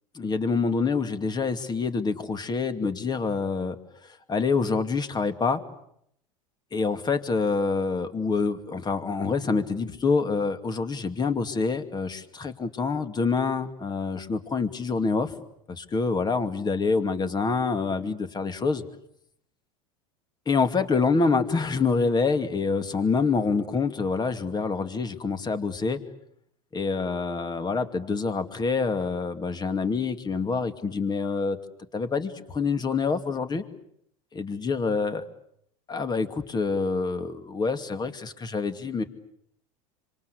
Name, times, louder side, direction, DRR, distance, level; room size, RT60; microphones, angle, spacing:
voice 1, 0.1-3.8 4.3-5.6 6.7-15.3 15.7-18.8 20.5-26.0 26.7-31.6 31.9-33.6 34.3-35.3 35.9-39.0, left 4 dB, 25° left, 10 dB, 2.5 m, -26 dB
26.5 x 26.0 x 8.4 m, 0.71 s
hypercardioid pair, 95°, 18 cm